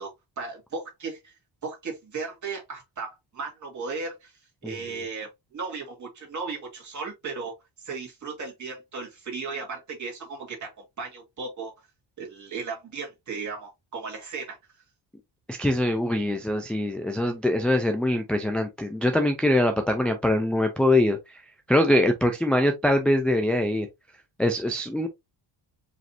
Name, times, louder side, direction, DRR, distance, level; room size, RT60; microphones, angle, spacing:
voice 1, 0.0-1.3 1.6-4.3 4.6-11.7 12.2-14.6, right 4 dB, 35° right, 2.1 m, -36 dB
voice 2, 15.5-21.4 21.7-23.9 24.4-25.1, left 1 dB, 5° left, 0.3 m, -23 dB
5.0 x 3.2 x 2.7 m
cardioid pair, 165°, 49 cm